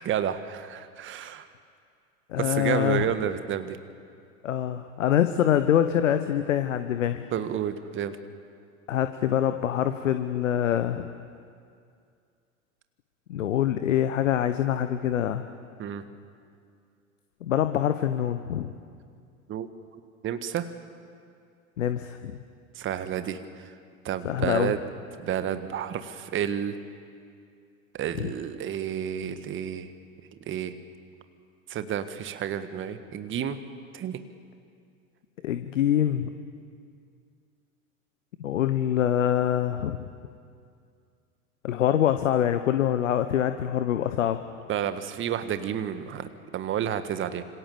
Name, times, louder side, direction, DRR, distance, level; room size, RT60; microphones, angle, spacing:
voice 1, 0.0-1.5 2.4-3.8 7.3-8.2 15.8-16.0 19.5-19.7 20.2-20.7 22.7-23.7 24.0-24.8 25.2-26.7 27.9-29.9 30.5-30.7 31.7-33.6 33.9-34.2 44.7-47.4, right 9 dB, 30° right, 10 dB, 1.7 m, -30 dB
voice 2, 2.3-3.1 4.4-7.2 8.9-11.1 13.3-15.4 17.4-18.7 21.8-22.3 24.2-24.7 28.2-28.3 35.4-36.3 38.4-40.0 41.6-44.4, left 10 dB, 65° left, 9 dB, 1.2 m, -25 dB
27.0 x 25.5 x 7.1 m, 2.3 s
figure-of-eight pair, 85°, 42 cm